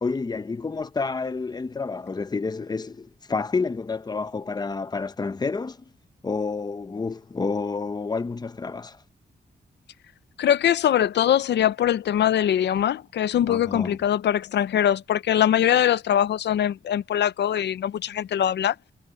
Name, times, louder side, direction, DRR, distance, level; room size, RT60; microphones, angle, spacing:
voice 1, 0.0-5.8 6.2-9.0 13.5-14.0, left 4 dB, 25° left, 0.8 m, -29 dB
voice 2, 10.4-18.7, left 10 dB, 90° left, 0.6 m, -22 dB
wide cardioid pair, 130°, 17 cm